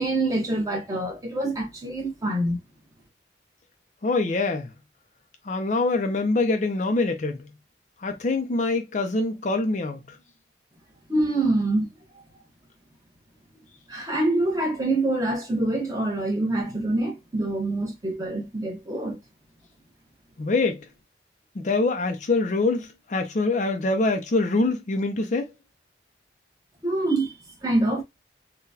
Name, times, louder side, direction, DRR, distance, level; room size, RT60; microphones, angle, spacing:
voice 1, 0.0-2.6 11.1-11.9 13.9-19.2 26.8-27.3 27.6-28.0, right 2 dB, 20° right, 1.0 m, -25 dB
voice 2, 4.0-4.7 5.5-7.5 8.0-10.2 20.4-20.9 21.6-25.5, left 3 dB, 40° left, 0.5 m, -24 dB
3.8 x 2.2 x 2.7 m
head